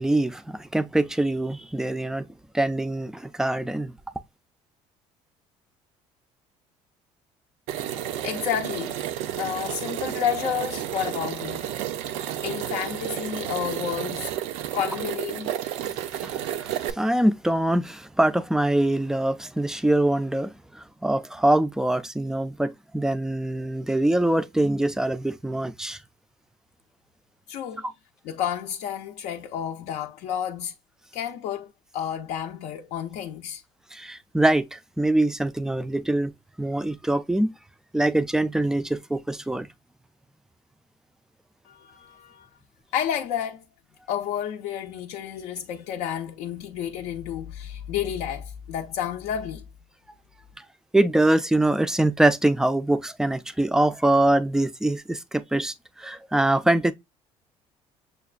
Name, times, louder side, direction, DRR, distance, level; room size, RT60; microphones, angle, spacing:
voice 1, 0.0-2.3 2.5-3.9 15.8-26.0 27.8-27.9 33.9-36.3 36.6-37.5 37.9-39.7 50.6-50.7 50.9-56.9, right 1 dB, 5° right, 0.3 m, -24 dB
sound 1, 7.7-16.9, right 11 dB, 85° right, 0.5 m, -31 dB
voice 2, 8.2-9.0 9.4-11.7 12.4-14.3 14.7-15.5 27.5-27.9 28.2-30.7 31.1-33.6 41.6-42.5 42.9-43.6 44.1-49.6, left 9 dB, 75° left, 0.5 m, -31 dB
6.6 x 2.2 x 2.4 m
cardioid pair, 130°, 12 cm